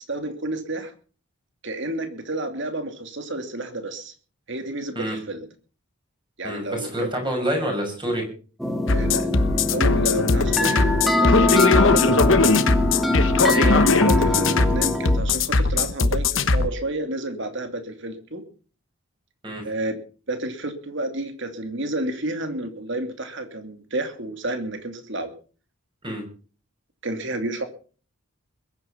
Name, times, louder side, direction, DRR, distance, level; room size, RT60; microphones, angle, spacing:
voice 1, 0.1-0.9 1.6-4.1 4.5-5.5 6.4-7.1 8.9-12.6 13.4-18.4 19.6-20.0 20.3-25.3 27.0-27.6, right 2 dB, 55° right, 7 dB, 2.7 m, -30 dB
voice 2, 6.4-8.2 13.5-13.8 19.4-19.6 26.0-26.2, equal, 20° right, 2 dB, 6.0 m, -27 dB
sound 1, 8.6-15.2, left 1 dB, ahead, 1.8 m, -24 dB
sound 2, 8.9-16.7, left 3 dB, 60° left, 1.1 m, -19 dB
21.5 x 9.5 x 5.8 m, 0.40 s
head